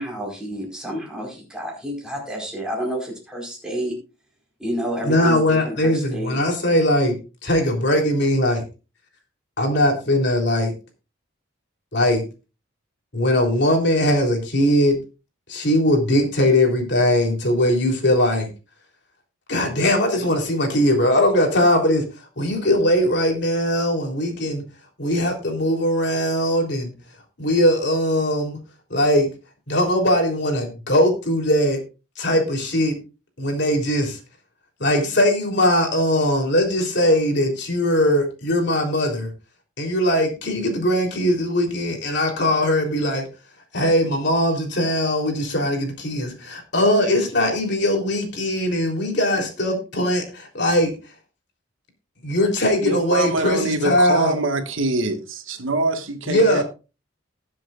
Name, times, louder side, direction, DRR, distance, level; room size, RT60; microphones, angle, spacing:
voice 1, 0.0-4.0 4.6-6.4, equal, 5° right, 4.7 m, -29 dB
voice 2, 5.0-7.2 7.4-8.6 9.6-10.7 11.9-12.2 13.1-15.0 15.5-18.5 19.5-22.0 22.4-24.6 25.0-26.9 27.4-28.6 28.9-29.3 29.7-31.8 32.2-32.9 33.4-34.2 34.8-39.3 39.8-43.3 43.7-50.9 52.2-54.3 56.3-56.6, left 1 dB, 60° left, 3.5 m, -20 dB
voice 3, 52.8-56.6, right 2 dB, 80° right, 1.6 m, -24 dB
20.0 x 7.6 x 2.5 m
head